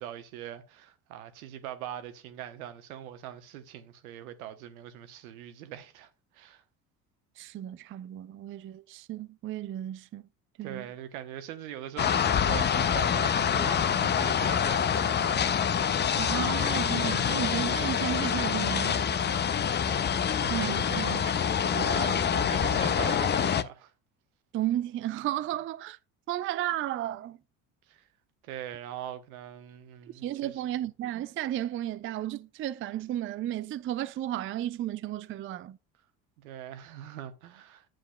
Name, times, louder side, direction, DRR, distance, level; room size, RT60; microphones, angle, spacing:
voice 1, 0.0-6.1 6.3-6.6 10.6-15.6 20.3-21.3 21.7-23.9 27.9-28.1 28.4-30.6 36.4-37.9, right 11 dB, 80° right, 1.0 m, -42 dB
voice 2, 7.4-10.3 10.6-10.9 16.2-19.0 20.5-21.3 21.6-22.1 24.5-26.0 26.3-27.4 30.2-35.8, right 13 dB, 30° right, 0.4 m, -33 dB
sound 1, 12.0-23.6, left 8 dB, 25° left, 0.5 m, -26 dB
9.0 x 7.6 x 2.3 m
hypercardioid pair, 65°, 42 cm